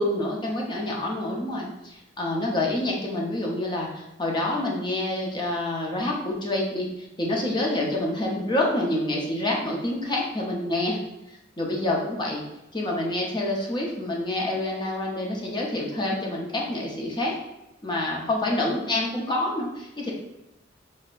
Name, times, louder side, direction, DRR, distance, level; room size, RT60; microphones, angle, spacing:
voice 1, 0.0-11.0 11.3-12.4 12.7-17.4 17.8-20.1, left 1 dB, 25° left, -2 dB, 0.7 m, -27 dB
6.1 x 2.2 x 2.4 m, 0.90 s
head